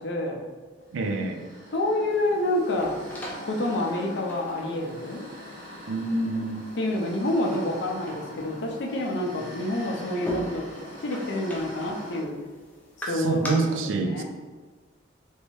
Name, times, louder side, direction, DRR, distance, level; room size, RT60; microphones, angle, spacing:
voice 1, 0.0-0.4 1.7-3.0 3.4-5.3 6.8-10.6 11.0-12.4 13.1-14.2, left 1 dB, 65° left, 1 dB, 0.5 m, -28 dB
sound 1, 0.9-12.2, equal, 65° right, 1.3 m, -43 dB
voice 2, 0.9-1.4 5.9-6.6 13.1-14.2, right 3 dB, 85° right, 5 dB, 0.4 m, -27 dB
sound 2, 2.1-13.5, equal, 10° left, 0.4 m, -43 dB
3.1 x 2.8 x 3.0 m, 1.4 s
head